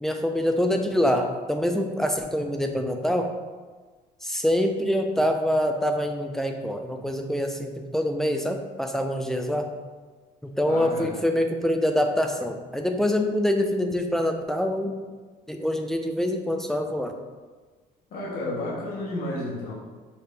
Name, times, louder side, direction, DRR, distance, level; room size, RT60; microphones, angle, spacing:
voice 1, 0.0-3.3 4.2-9.7 10.4-14.9 15.5-17.1, left 1 dB, ahead, 4 dB, 0.4 m, -25 dB
voice 2, 10.7-11.1 18.1-19.7, left 1 dB, 60° left, -6 dB, 1.3 m, -31 dB
5.9 x 2.7 x 3.3 m, 1.4 s
cardioid pair, 110°, 17 cm